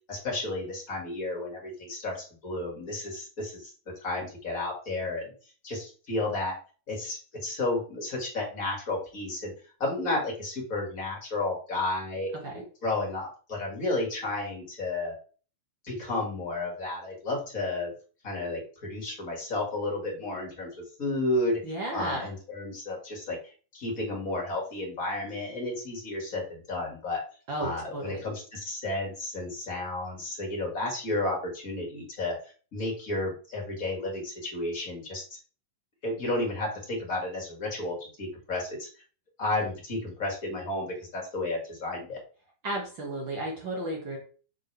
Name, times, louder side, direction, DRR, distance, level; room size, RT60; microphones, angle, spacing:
voice 1, 0.1-2.2 2.4-3.7 4.0-5.3 5.6-6.6 6.9-9.5 9.8-15.1 15.8-17.9 18.2-21.6 21.9-23.4 23.7-27.2 27.6-32.4 32.7-35.2 36.0-38.9 39.4-40.9 41.1-42.2, left 2 dB, 30° left, -1 dB, 2.0 m, -32 dB
voice 2, 21.6-22.3 27.5-28.2 42.6-44.2, right 1 dB, 50° right, -1 dB, 1.5 m, -33 dB
6.4 x 6.2 x 3.4 m, 0.38 s
omnidirectional pair, 4.1 m